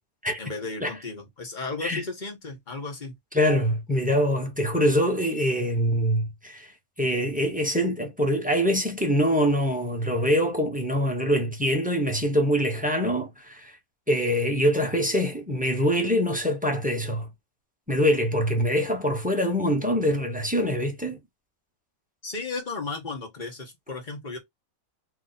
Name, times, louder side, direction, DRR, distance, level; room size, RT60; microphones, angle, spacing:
voice 1, 0.4-3.2 22.2-24.4, left 3 dB, 35° left, 1.4 m, -34 dB
voice 2, 3.3-6.7 7.0-13.8 14.1-17.3 17.9-21.2, equal, 5° right, 0.9 m, -24 dB
3.1 x 3.0 x 4.0 m
omnidirectional pair, 1.6 m